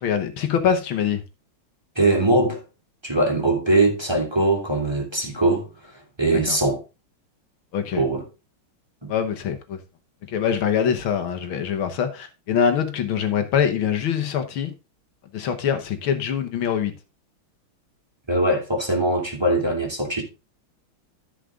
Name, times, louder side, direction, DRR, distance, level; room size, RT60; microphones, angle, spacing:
voice 1, 0.0-1.2 6.5-6.6 7.7-8.0 9.1-9.8 10.3-14.7 15.3-16.9, left 8 dB, 80° left, 1.9 m, -24 dB
voice 2, 2.0-2.6 3.0-5.7 6.2-6.8 8.0-8.2 9.0-9.1 18.3-20.2, right 2 dB, 10° right, 2.5 m, -21 dB
14.0 x 5.0 x 3.7 m
omnidirectional pair, 2.3 m